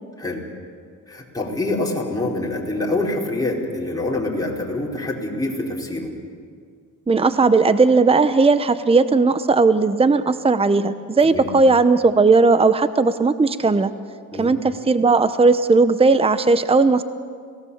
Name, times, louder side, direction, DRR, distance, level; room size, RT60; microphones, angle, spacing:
voice 1, 1.1-6.1 11.2-11.5 14.3-14.5, left 2 dB, 10° left, -4 dB, 5.0 m, -25 dB
voice 2, 7.1-13.9 14.4-17.0, right 3 dB, 20° right, 12 dB, 0.8 m, -17 dB
29.0 x 18.0 x 7.3 m, 2.1 s
cardioid pair, 95°, 31 cm